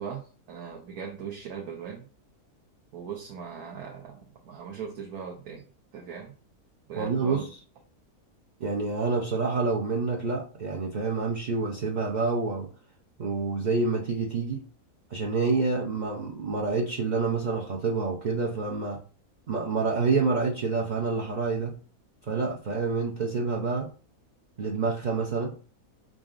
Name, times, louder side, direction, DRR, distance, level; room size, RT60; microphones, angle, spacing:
voice 1, 0.0-2.1 2.9-4.2 4.5-5.6 5.9-6.3 6.9-7.5, right 7 dB, 75° right, 0 dB, 1.2 m, -39 dB
voice 2, 6.9-7.5 8.6-12.7 13.2-14.6 15.1-19.0 19.5-21.8 22.3-23.9 24.6-25.5, right 4 dB, 60° right, -1 dB, 0.4 m, -27 dB
5.0 x 3.8 x 2.5 m, 0.38 s
omnidirectional pair, 1.6 m